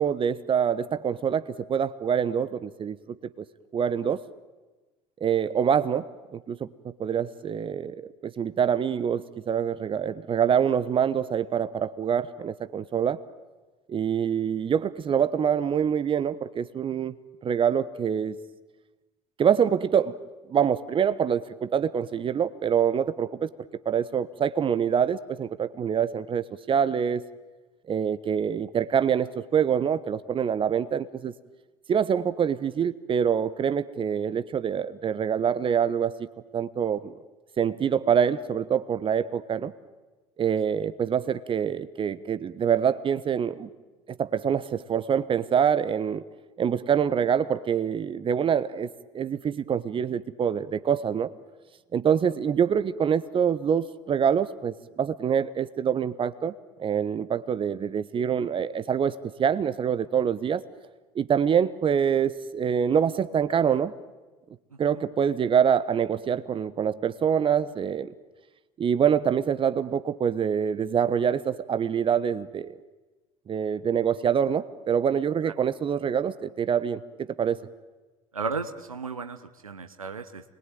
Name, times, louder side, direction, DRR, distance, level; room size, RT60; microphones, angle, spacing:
voice 1, 0.0-3.0 3.7-4.2 5.2-6.7 7.0-8.0 8.2-13.2 13.9-17.2 17.4-18.4 19.4-20.2 20.5-23.5 23.8-27.2 27.9-31.3 31.9-36.1 36.5-37.1 37.6-39.7 40.4-43.7 44.2-46.2 46.6-48.9 49.1-51.3 51.9-60.6 61.1-63.9 64.8-68.1 68.8-72.8 73.5-77.6, right 8 dB, 30° right, 13 dB, 1.1 m, -25 dB
voice 2, 78.3-80.4, right 4 dB, 85° right, 7 dB, 1.2 m, -34 dB
29.5 x 22.0 x 9.2 m, 1.2 s
figure-of-eight pair, 70°, 17 cm